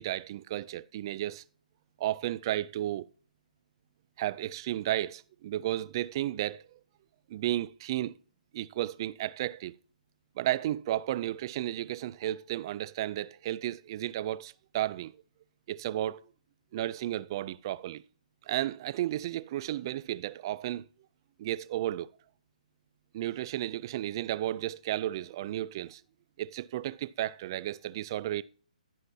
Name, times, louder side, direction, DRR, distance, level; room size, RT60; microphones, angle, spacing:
voice 1, 0.0-1.4 2.0-3.1 4.2-6.8 7.3-8.1 8.5-9.7 10.4-15.1 15.7-16.2 16.7-18.0 18.5-20.9 21.4-22.1 23.1-26.0 26.4-28.4, right 13 dB, 30° right, 0.3 m, -33 dB
10.5 x 10.0 x 2.7 m
hypercardioid pair, 160°, 4 cm